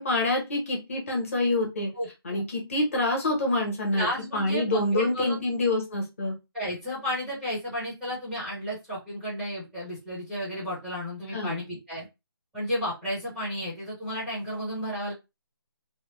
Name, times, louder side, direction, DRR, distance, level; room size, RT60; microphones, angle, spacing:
voice 1, 0.0-1.9 2.2-4.1 4.3-6.3 11.3-11.6, left 2 dB, 35° left, -1 dB, 1.2 m, -26 dB
voice 2, 1.9-2.4 3.9-5.5 6.5-12.0 12.5-15.1, equal, ahead, -9 dB, 0.7 m, -32 dB
3.0 x 2.2 x 3.1 m, 0.24 s
figure-of-eight pair, 170°, 13 cm